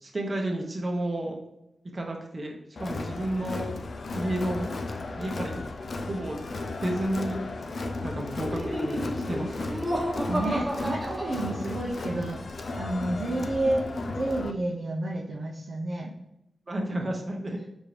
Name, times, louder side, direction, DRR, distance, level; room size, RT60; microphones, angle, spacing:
voice 1, 0.0-1.4 1.9-3.7 4.1-4.7 5.2-5.6 6.1-6.4 6.8-7.4 8.0-10.0 16.7-17.6, right 1 dB, 40° right, 1 dB, 0.8 m, -31 dB
Crowd, 2.8-14.5, left 3 dB, 65° left, 0.3 m, -35 dB
Laughter, 8.4-12.1, equal, 15° right, 1.0 m, -32 dB
voice 2, 10.3-16.2, right 1 dB, 70° right, -2 dB, 0.6 m, -30 dB
4.5 x 2.6 x 3.2 m, 0.84 s
cardioid pair, 55°, 0 cm